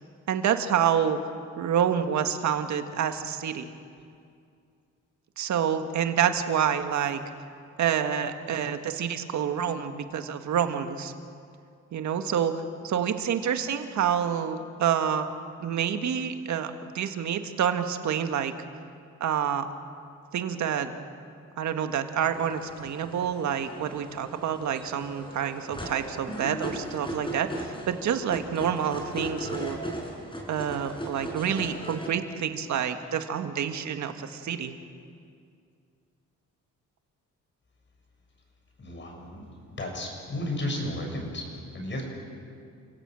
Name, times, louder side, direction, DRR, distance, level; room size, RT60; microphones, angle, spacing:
voice 1, 0.3-1.2 1.6-3.7 5.4-7.2 7.8-11.1 11.9-15.3 15.6-18.5 19.2-19.7 20.3-20.9 21.6-29.8 30.5-34.7, right 8 dB, 70° right, 7 dB, 1.8 m, -28 dB
sound 1, 22.3-32.1, right 1 dB, 15° left, 5.5 m, -38 dB
voice 2, 38.8-42.0, left 1 dB, 40° left, 1 dB, 7.1 m, -34 dB
29.5 x 17.0 x 7.7 m, 2.3 s
cardioid pair, 90°, 30 cm